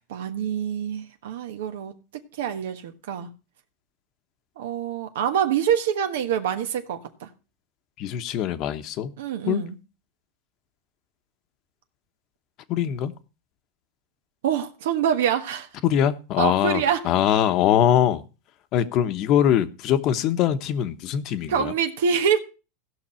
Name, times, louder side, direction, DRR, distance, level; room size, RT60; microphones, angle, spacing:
voice 1, 0.0-3.3 4.6-7.3 9.2-9.8 14.4-15.7 16.4-17.1 21.5-22.4, right 8 dB, 80° right, 1.3 m, -26 dB
voice 2, 8.0-9.1 9.5-9.6 12.7-13.1 15.8-18.2 18.7-21.7, left 10 dB, 45° left, 1.0 m, -22 dB
16.5 x 5.9 x 4.3 m
supercardioid pair, 140°, 0 cm